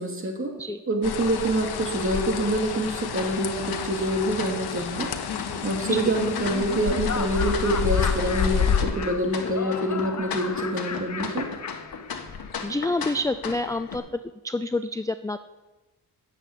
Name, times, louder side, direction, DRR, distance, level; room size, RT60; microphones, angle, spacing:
voice 1, 0.0-0.5 0.9-5.1 5.6-11.5, right 1 dB, 35° right, 2 dB, 2.5 m, -26 dB
sound 1, 1.0-8.9, left 7 dB, 80° left, 1.1 m, -29 dB
sound 2, 3.1-14.0, left 6 dB, 65° left, 1.5 m, -36 dB
Laughter, 5.1-12.6, left 6 dB, 45° left, 1.0 m, -35 dB
voice 2, 12.6-14.0 14.4-15.4, left 2 dB, 10° left, 10 dB, 0.4 m, -28 dB
10.5 x 7.5 x 8.2 m, 1.1 s
cardioid pair, 65°, 39 cm